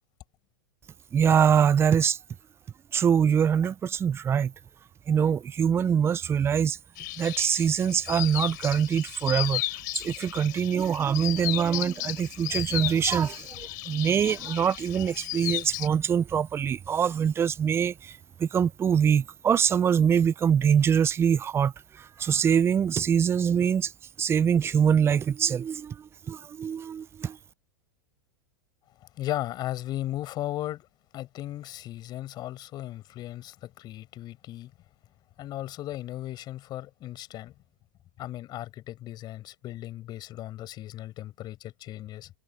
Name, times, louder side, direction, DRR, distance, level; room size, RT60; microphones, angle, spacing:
voice 1, 1.1-2.2 2.9-4.5 5.1-6.8 7.2-9.6 9.9-23.9 24.2-27.4, right 7 dB, 20° right, 0.7 m, -24 dB
sound 1, 7.0-15.9, left 20 dB, 60° left, 4.2 m, -34 dB
voice 2, 29.0-30.9 31.1-34.7 35.4-37.5 38.2-42.3, left 14 dB, 40° left, 5.5 m, -36 dB
hypercardioid pair, 105°, 11 cm